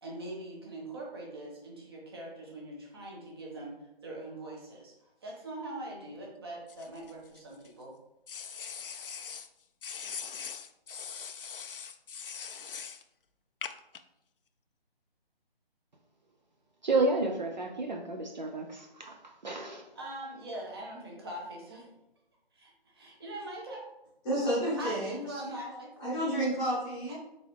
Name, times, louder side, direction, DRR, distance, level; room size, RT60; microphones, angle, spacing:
voice 1, 0.0-7.9 19.9-21.9 22.5-23.8 24.8-25.9 27.1-27.2, right 1 dB, 25° right, -3 dB, 0.9 m, -42 dB
sound 1, 6.7-7.7 8.3-9.5 9.8-13.0 13.6-14.0, left 7 dB, 60° left, 0.4 m, -41 dB
voice 2, 16.8-19.1 19.4-19.9, right 3 dB, 45° right, 2 dB, 0.5 m, -30 dB
voice 3, 24.2-25.2 26.0-27.2, equal, 10° left, -9 dB, 0.9 m, -30 dB
3.8 x 3.8 x 3.2 m, 0.87 s
figure-of-eight pair, 155°, 31 cm